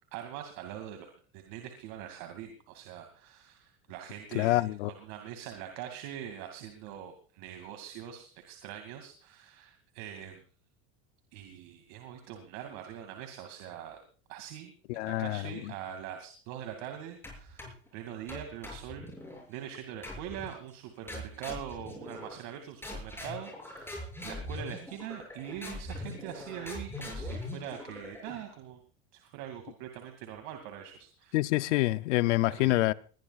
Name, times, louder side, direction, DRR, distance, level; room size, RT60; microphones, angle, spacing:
voice 1, 0.1-10.4 11.3-14.0 14.3-17.6 17.9-19.1 19.5-28.8 29.1-31.4 32.6-32.8, right 10 dB, 70° right, 2.6 m, -43 dB
voice 2, 4.3-4.9 14.9-15.7 31.3-32.9, left 18 dB, 85° left, 0.8 m, -27 dB
sound 1, 17.2-17.9 18.3-19.4 20.0-20.6 21.1-22.5 22.8-28.5, left 1 dB, 5° left, 7.0 m, -42 dB
21.0 x 20.0 x 2.4 m
supercardioid pair, 120°, 35 cm